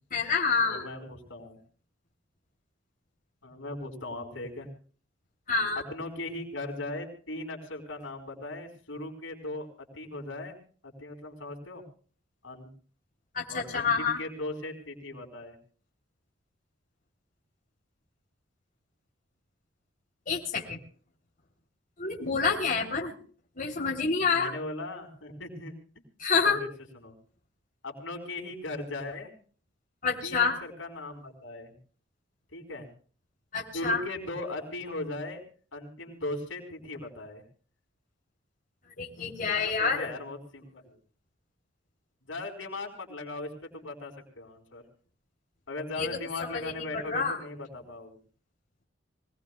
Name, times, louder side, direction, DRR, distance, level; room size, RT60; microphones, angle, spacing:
voice 1, 0.1-0.9 5.5-5.8 13.3-14.2 20.3-20.8 22.0-23.1 23.6-24.5 26.2-26.6 30.0-30.6 33.5-34.0 39.0-40.1 46.0-46.1 46.5-47.4, left 5 dB, 45° left, -1 dB, 3.4 m, -28 dB
voice 2, 0.6-1.6 3.4-4.7 5.7-10.6 10.8-11.8 12.4-12.7 13.5-15.6 24.2-25.7 26.4-26.7 27.0-27.1 27.8-29.3 30.2-31.8 32.5-32.9 33.7-35.4 35.7-37.4 39.5-41.0 42.3-44.8 45.7-48.2, left 2 dB, 85° left, 2 dB, 4.7 m, -38 dB
24.5 x 19.0 x 2.4 m, 0.43 s
head